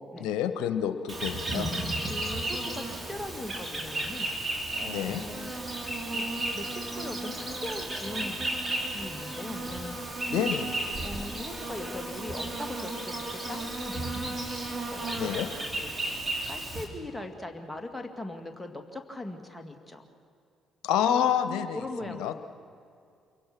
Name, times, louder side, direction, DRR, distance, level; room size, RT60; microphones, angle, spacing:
voice 1, 0.2-1.7 4.9-5.2 10.3-10.7 15.2-15.5 20.8-22.3, left 9 dB, 70° left, 10 dB, 1.2 m, -28 dB
Insect, 1.1-16.8, right 2 dB, 25° right, 4.4 m, -33 dB
voice 2, 2.1-4.3 4.7-5.5 5.8-6.3 6.5-8.4 8.9-10.2 11.0-14.4 14.9-15.9 16.5-20.0 21.2-21.3 21.7-22.3, left 1 dB, 10° left, 4 dB, 2.3 m, -40 dB
27.5 x 23.0 x 6.1 m, 2.4 s
hypercardioid pair, 45°, 0 cm